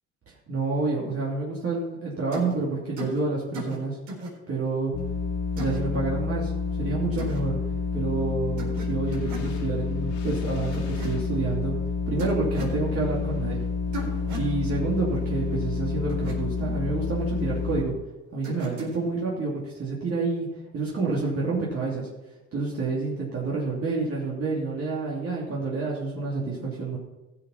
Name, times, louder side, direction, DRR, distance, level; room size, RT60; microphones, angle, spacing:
voice 1, 0.3-4.0 4.5-4.9 5.6-6.5 6.8-7.6 7.9-11.7 12.1-13.6 14.3-17.9 18.3-20.5 20.7-22.1 22.5-27.0, right 3 dB, 50° right, -5 dB, 2.9 m, -28 dB
sound 1, 2.3-2.5 3.0-3.2 3.5-3.8 4.1-4.3 5.6-5.8 7.2-7.4 8.6-8.9 9.1-9.5 10.7-11.1 12.2-12.8 13.9-14.5 16.1-16.3 18.4-19.0, equal, 70° right, 4.3 m, -36 dB
sound 2, 4.9-17.8, left 5 dB, 80° left, 2.5 m, -29 dB
15.5 x 6.7 x 5.8 m, 1.1 s
cardioid pair, 85°, 30 cm